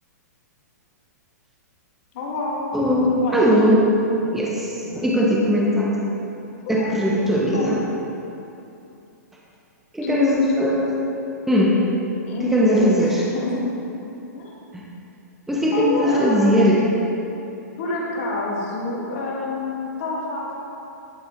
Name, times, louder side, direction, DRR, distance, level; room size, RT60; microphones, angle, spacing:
voice 1, 2.1-2.6 3.1-3.4 6.7-7.0 7.4-7.7 10.0-10.7 12.3-13.7 14.3-14.5 15.7-16.6 17.8-20.5, left 3 dB, 50° left, -3 dB, 1.9 m, -27 dB
voice 2, 2.7-3.9 4.2-6.0 6.7-7.8 9.9-10.9 11.5-11.8 12.4-13.2 14.7-14.8 15.5-16.8, equal, 5° right, -4 dB, 1.0 m, -19 dB
11.0 x 4.2 x 4.5 m, 2.8 s
hypercardioid pair, 135°, 9 cm